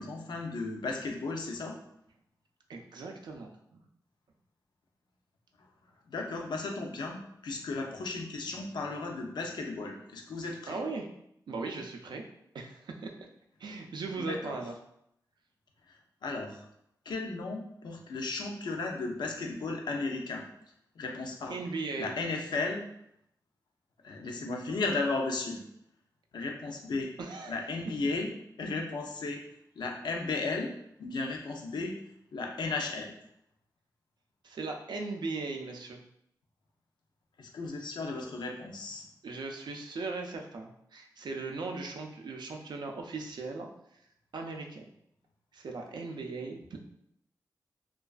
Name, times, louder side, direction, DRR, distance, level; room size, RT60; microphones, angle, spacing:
voice 1, 0.0-1.8 6.1-10.8 14.1-14.6 15.9-16.0 16.2-16.7 17.1-20.4 21.0-21.6 21.9-22.8 24.0-25.6 26.3-27.1 27.5-28.3 28.6-29.4 29.8-30.7 31.0-32.0 32.3-33.1 37.4-39.1, left 3 dB, 75° left, 2 dB, 0.4 m, -35 dB
voice 2, 2.7-3.8 10.7-11.1 11.5-12.2 12.5-13.3 13.6-14.7 21.5-22.1 27.2-27.6 34.4-36.0 39.2-43.7 44.3-44.8 45.5-46.8, right 3 dB, 75° right, 2 dB, 0.4 m, -38 dB
2.3 x 2.3 x 2.3 m, 0.75 s
cardioid pair, 55°, 8 cm